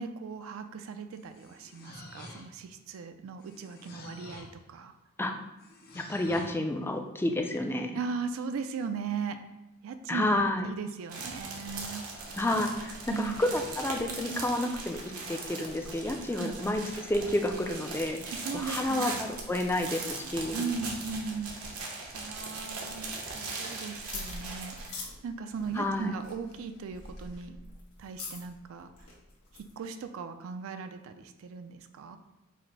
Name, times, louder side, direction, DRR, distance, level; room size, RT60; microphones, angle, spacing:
voice 1, 0.0-4.9 7.9-9.4 9.8-12.1 13.1-13.4 16.3-16.6 18.3-19.3 20.5-21.7 22.1-27.6 28.0-29.1 29.5-32.2, right 5 dB, 65° right, 8 dB, 0.3 m, -38 dB
sound 1, 1.1-2.7 3.4-4.6 5.6-6.6, left 2 dB, 45° left, 0.6 m, -48 dB
voice 2, 6.0-8.0 10.1-10.6 12.4-18.2 18.5-20.6 25.8-26.1, left 1 dB, 10° left, 5 dB, 0.3 m, -30 dB
sound 2, 11.1-24.9, right 3 dB, 85° right, 0.9 m, -40 dB
sound 3, 24.1-29.7, left 3 dB, 85° left, 1.3 m, -45 dB
4.9 x 2.0 x 4.5 m, 1.0 s
head